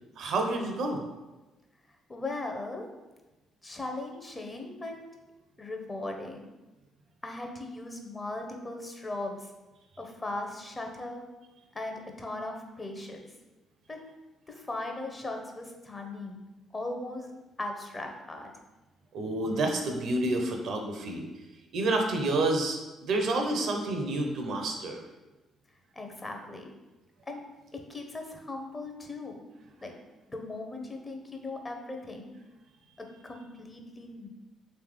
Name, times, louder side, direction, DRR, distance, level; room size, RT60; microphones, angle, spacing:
voice 1, 0.2-1.0 19.1-21.3 21.7-25.0, right 2 dB, 60° right, 3 dB, 0.5 m, -29 dB
voice 2, 2.1-2.9 3.6-5.0 5.6-6.5 7.2-9.5 10.0-11.2 11.7-13.2 13.9-14.0 14.5-16.4 16.7-17.3 17.6-18.5 25.9-26.7 27.2-27.4 27.7-29.4 29.8-29.9 30.3-32.3 33.2-34.3, left 2 dB, 25° left, 3 dB, 0.7 m, -38 dB
3.3 x 3.2 x 3.1 m, 1.1 s
hypercardioid pair, 45°, 0 cm